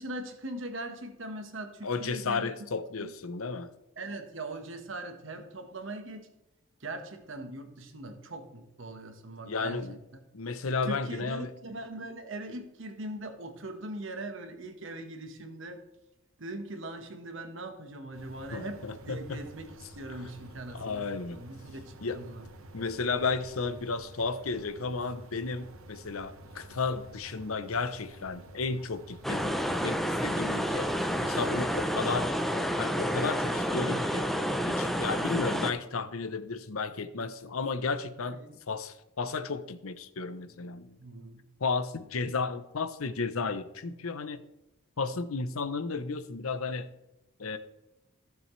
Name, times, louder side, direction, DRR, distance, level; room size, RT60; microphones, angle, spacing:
voice 1, 0.0-2.7 4.0-6.3 6.8-10.0 10.9-15.8 16.4-22.4 38.2-38.5 41.0-41.5, right 2 dB, 65° right, 6 dB, 1.4 m, -41 dB
voice 2, 1.8-3.7 9.4-10.0 10.3-11.5 18.5-19.5 20.7-21.4 22.0-22.2 22.7-30.9 31.2-32.3 32.8-34.3 34.7-41.0 41.6-44.4 45.0-46.9 47.4-47.6, left 4 dB, 85° left, 11 dB, 0.8 m, -33 dB
sound 1, 18.1-32.3, right 2 dB, 85° right, 1.0 m, -50 dB
sound 2, 29.2-35.7, equal, ahead, 0.6 m, -29 dB
15.0 x 7.1 x 3.2 m, 0.95 s
head